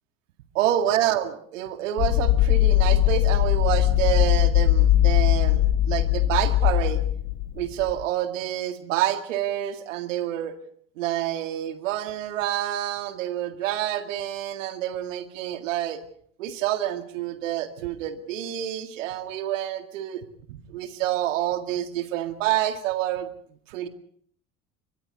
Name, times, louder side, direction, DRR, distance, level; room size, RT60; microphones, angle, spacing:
voice 1, 0.6-7.0 7.6-10.6 11.0-16.0 16.4-23.3 23.7-23.9, right 12 dB, 65° right, 8 dB, 2.1 m, -28 dB
sound 1, 2.0-8.0, left 13 dB, 50° left, 1.4 m, -20 dB
29.5 x 23.5 x 4.0 m, 0.63 s
figure-of-eight pair, 65°, 41 cm